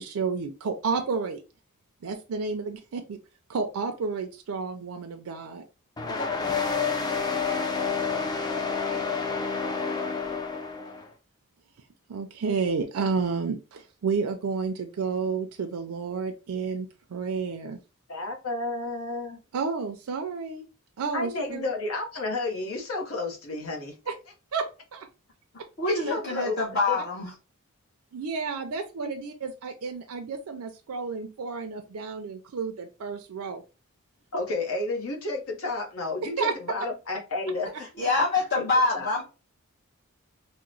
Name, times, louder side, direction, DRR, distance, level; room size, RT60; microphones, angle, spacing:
voice 1, 0.0-1.4 2.0-3.2 3.5-5.6 7.9-8.0 12.1-17.8 19.5-20.7 21.0-21.7 24.5-24.6 24.9-25.1 25.9-26.1 28.1-33.6 36.4-36.5, right 5 dB, 80° right, 0.4 m, -31 dB
sound 1, 6.0-11.1, left 5 dB, 20° left, 0.4 m, -29 dB
voice 2, 18.1-19.4 21.1-24.0 25.9-26.6 26.9-27.0 29.0-29.1 34.3-37.7 38.5-38.6 38.9-39.1, left 2 dB, 75° left, 0.9 m, -31 dB
voice 3, 25.8-27.3 38.0-39.2, left 3 dB, 50° left, 0.9 m, -25 dB
2.9 x 2.1 x 3.8 m
head